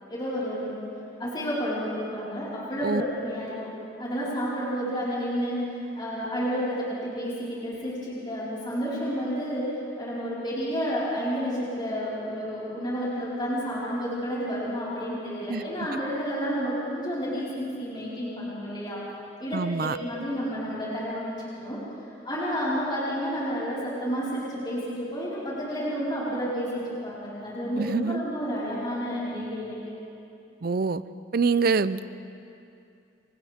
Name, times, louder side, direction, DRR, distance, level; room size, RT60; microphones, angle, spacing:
voice 1, 0.1-0.7 1.2-9.7 10.0-19.0 19.4-21.8 22.2-29.8, equal, 25° left, -9 dB, 5.0 m, -30 dB
voice 2, 19.5-20.0 27.7-28.2 30.6-31.0 31.3-32.1, right 4 dB, 60° right, 15 dB, 0.6 m, -25 dB
29.5 x 24.5 x 3.7 m, 2.6 s
head